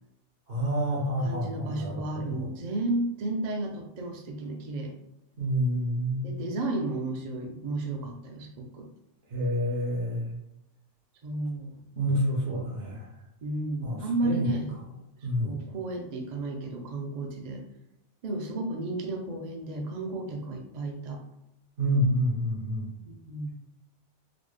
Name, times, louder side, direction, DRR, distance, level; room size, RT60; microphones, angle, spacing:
voice 1, 0.5-2.5 5.4-6.5 9.3-10.4 12.0-13.0 13.8-14.5 15.2-15.6 21.8-22.9, equal, 75° right, -3 dB, 1.3 m, -28 dB
voice 2, 1.2-4.9 6.2-8.9 11.2-11.7 13.4-14.7 15.4-17.6 18.2-21.2 23.1-23.5, right 2 dB, 50° right, 1 dB, 0.5 m, -33 dB
3.9 x 2.1 x 3.2 m, 0.87 s
omnidirectional pair, 1.2 m